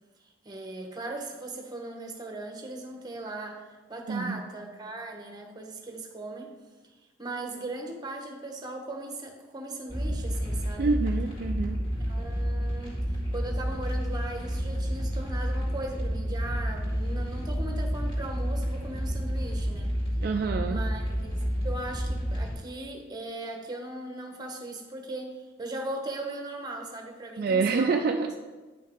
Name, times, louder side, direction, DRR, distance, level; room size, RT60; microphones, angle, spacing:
voice 1, 0.4-6.5 7.2-10.9 12.1-12.9 13.3-19.9 20.7-28.3, right 2 dB, 20° right, 3 dB, 1.0 m, -38 dB
voice 2, 4.1-4.4 10.8-11.8 20.2-20.8 27.4-28.3, right 4 dB, 50° right, 4 dB, 0.3 m, -27 dB
sound 1, 9.9-22.5, equal, 30° left, 2.3 m, -30 dB
9.8 x 5.6 x 3.6 m, 1.3 s
head